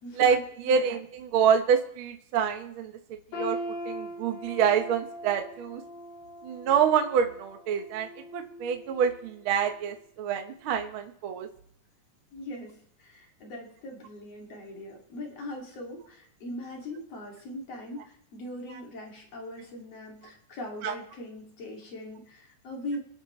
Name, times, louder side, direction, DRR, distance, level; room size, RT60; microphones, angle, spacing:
voice 1, 0.1-2.9 3.3-3.6 3.8-5.8 6.4-11.5 20.8-20.9, right 7 dB, 75° right, 6 dB, 1.1 m, -26 dB
sound 1, 3.3-9.3 9.7-9.9 10.6-10.7, equal, 85° left, 5.1 m, -40 dB
voice 2, 12.3-23.0, left 1 dB, 45° left, 0 dB, 3.5 m, -40 dB
25.0 x 8.6 x 3.2 m, 0.69 s
omnidirectional pair, 4.0 m